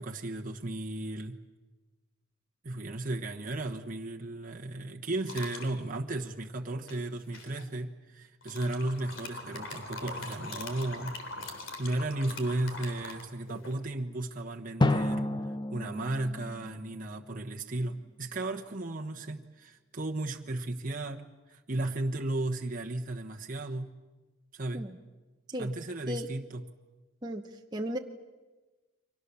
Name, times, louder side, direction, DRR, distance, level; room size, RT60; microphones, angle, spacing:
voice 1, 0.0-1.4 2.6-11.2 11.8-15.3 15.7-23.9 24.5-24.9 25.6-26.6, right 2 dB, 40° right, 1 dB, 1.2 m, -35 dB
sound 1, 5.3-5.7 6.9-7.6 8.4-13.8, left 2 dB, 70° left, 3.6 m, -42 dB
Drum, 14.8-17.5, left 1 dB, 20° left, 0.8 m, -31 dB
voice 2, 27.2-28.0, equal, 20° right, 2 dB, 1.0 m, -36 dB
30.0 x 24.5 x 7.0 m, 1.2 s
head